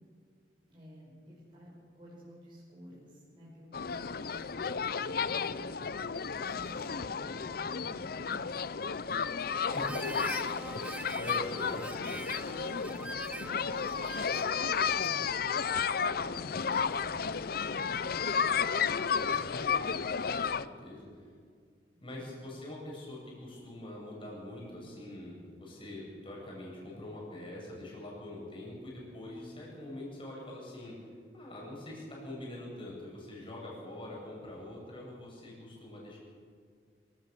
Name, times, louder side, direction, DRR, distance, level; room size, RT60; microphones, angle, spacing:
voice 1, 0.7-5.9 6.1-8.8 9.1-9.5 10.2-15.4 16.3-18.3 19.0-19.6 20.7-20.9 21.9-22.4, equal, 30° right, -7 dB, 5.6 m, -53 dB
sound 1, 3.7-20.6, left 6 dB, 60° left, 0.6 m, -32 dB
voice 2, 9.7-10.2 10.7-10.9 11.2-11.8 15.8-16.4 19.2-20.1 20.4-21.3 22.0-36.2, left 1 dB, 30° left, -3 dB, 7.6 m, -44 dB
Harmonica, 9.7-14.6, right 2 dB, 5° right, 0.6 m, -43 dB
26.0 x 17.0 x 6.8 m, 2.1 s
head